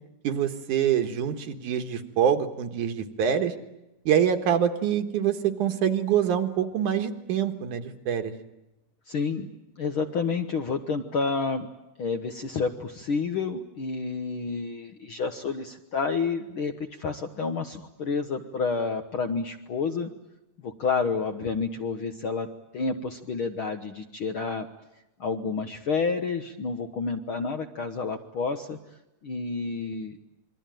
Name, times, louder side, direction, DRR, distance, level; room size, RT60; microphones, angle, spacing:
voice 1, 0.2-3.5 4.1-8.3, right 9 dB, 70° right, 7 dB, 3.0 m, -25 dB
voice 2, 9.1-9.5 9.8-11.7 12.0-20.1 20.6-22.5 22.7-24.7 25.2-28.8 29.2-30.2, left 4 dB, 55° left, 7 dB, 1.5 m, -29 dB
27.5 x 22.5 x 9.2 m, 0.92 s
omnidirectional pair, 3.7 m